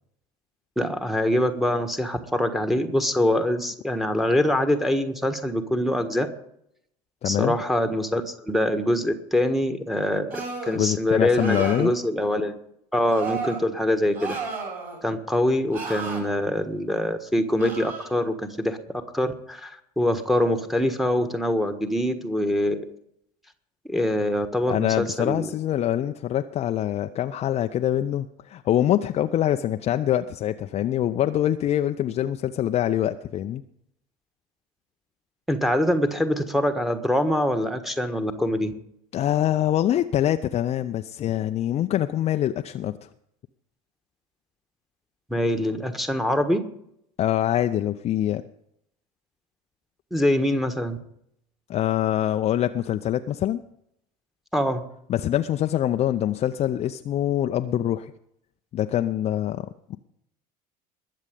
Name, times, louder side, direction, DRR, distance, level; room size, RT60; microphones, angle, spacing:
voice 1, 0.8-6.3 7.2-12.6 12.9-14.4 15.0-18.8 19.1-22.9 23.9-25.5 35.5-38.7 45.3-46.6 50.1-51.0 54.5-54.8, left 1 dB, ahead, 7 dB, 1.4 m, -24 dB
voice 2, 7.2-7.6 10.7-11.9 24.7-33.6 39.1-42.9 47.2-48.4 51.7-53.6 55.1-58.1 58.7-60.0, left 11 dB, 30° left, 8 dB, 0.5 m, -24 dB
sound 1, 10.3-10.8 11.3-11.9 13.1-13.6 14.1-15.0 15.7-16.2 17.6-18.1, right 4 dB, 45° right, 6.3 m, -33 dB
21.0 x 7.4 x 5.2 m, 0.74 s
figure-of-eight pair, 70°, 20 cm